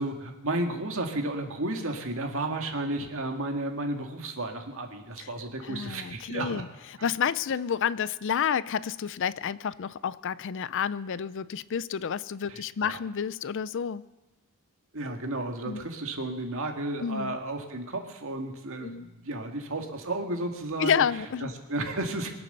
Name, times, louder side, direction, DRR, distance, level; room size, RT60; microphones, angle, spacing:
voice 1, 0.0-6.6 7.0-7.1 12.5-12.9 14.9-21.0 21.4-22.4, right 2 dB, 65° right, 4 dB, 1.9 m, -33 dB
voice 2, 5.6-6.7 7.0-14.0 15.6-15.8 17.0-17.4 18.8-19.1 20.8-21.5, left 7 dB, 55° left, 18 dB, 0.4 m, -30 dB
23.0 x 8.4 x 6.7 m, 1.2 s
head